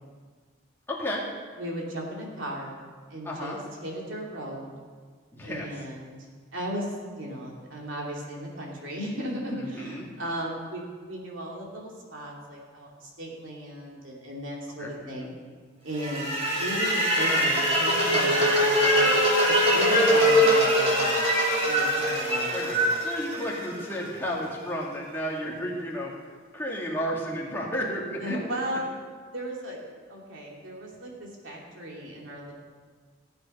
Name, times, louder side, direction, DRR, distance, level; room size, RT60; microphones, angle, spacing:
voice 1, 0.9-1.3 3.2-3.6 5.3-5.8 9.5-10.1 14.8-15.3 22.5-26.3 26.5-28.4, equal, 10° left, -4 dB, 2.3 m, -33 dB
voice 2, 1.6-4.7 5.4-15.3 15.8-19.1 19.4-21.2 21.6-22.9 28.2-28.8 29.3-29.8 30.1-32.5, equal, 70° right, -2 dB, 2.8 m, -36 dB
sound 1, 16.0-24.1, equal, 30° right, 3.1 m, -22 dB
15.5 x 8.0 x 5.6 m, 1.6 s
head